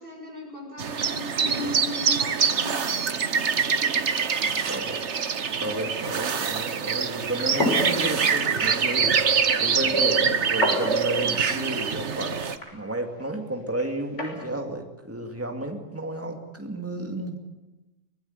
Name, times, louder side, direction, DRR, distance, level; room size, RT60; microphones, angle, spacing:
voice 1, 0.0-2.8, left 1 dB, 45° right, 0 dB, 7.2 m, -36 dB
sound 1, 0.8-12.6, right 6 dB, 65° right, 1.4 m, -25 dB
voice 2, 4.6-5.2 5.6-12.4 12.7-17.4, right 1 dB, 10° right, 4 dB, 2.3 m, -32 dB
sound 2, 7.2-14.4, left 1 dB, 65° left, 6.1 m, -33 dB
24.5 x 19.0 x 9.4 m, 1.1 s
omnidirectional pair, 1.3 m